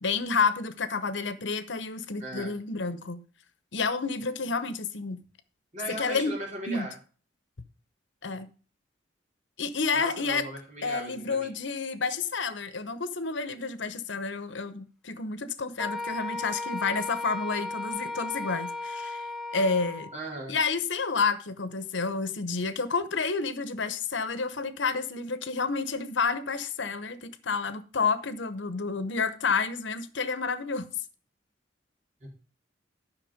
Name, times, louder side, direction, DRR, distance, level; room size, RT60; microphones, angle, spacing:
voice 1, 0.0-3.2 3.7-5.2 6.0-6.3 6.7-6.9 8.2-8.5 9.6-10.5 10.8-19.3 19.5-20.1 20.5-30.9, left 4 dB, 75° left, 0.9 m, -30 dB
voice 2, 2.2-2.6 5.7-7.0 9.9-11.5 20.1-20.6 32.2-32.3, right 1 dB, 40° right, 4.2 m, -38 dB
Wind instrument woodwind instrument, 15.8-20.2, left 2 dB, ahead, 1.1 m, -35 dB
11.0 x 6.0 x 5.0 m
head